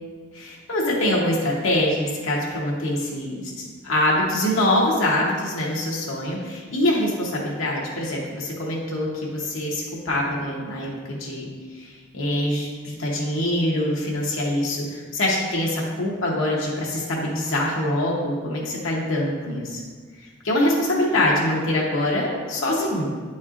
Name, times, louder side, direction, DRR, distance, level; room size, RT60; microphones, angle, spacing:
voice 1, 0.3-11.5 11.7-19.8 20.4-23.1, left 1 dB, 65° left, -4 dB, 1.0 m, -24 dB
8.9 x 4.3 x 2.5 m, 1.5 s
head